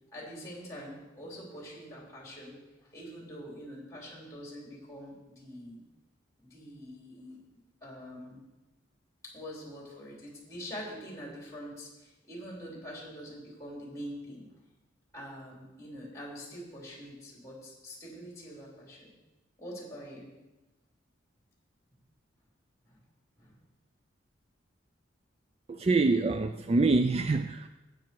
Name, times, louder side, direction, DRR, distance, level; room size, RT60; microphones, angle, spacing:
voice 1, 0.1-5.8 6.4-7.4 7.8-8.4 9.3-14.5 15.1-19.1 19.6-20.3 22.9-23.0 23.4-23.5, equal, 15° left, -3 dB, 3.7 m, -44 dB
voice 2, 25.7-27.7, right 3 dB, 30° right, 9 dB, 0.3 m, -25 dB
12.0 x 9.4 x 4.6 m, 1.1 s
head